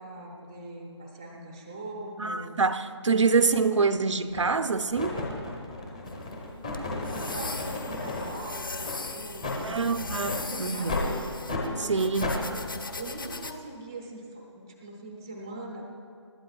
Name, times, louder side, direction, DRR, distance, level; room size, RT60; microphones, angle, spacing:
voice 1, 0.0-2.6 7.0-11.1 11.6-12.6 13.0-15.8, right 2 dB, 10° right, 0.6 m, -42 dB
voice 2, 2.2-5.2 9.6-10.9 11.8-12.3, right 4 dB, 80° right, 0.7 m, -26 dB
sound 1, 3.5-3.6 4.3-4.6 5.0-8.4 8.8-9.0 9.4-9.6 10.2-10.4 10.9-11.1 11.5-11.7 12.2-12.4, left 2 dB, 15° left, 0.9 m, -33 dB
sound 2, 6.1-13.5, left 3 dB, 45° left, 0.8 m, -39 dB
28.5 x 12.5 x 2.3 m
hypercardioid pair, 180°, 15 cm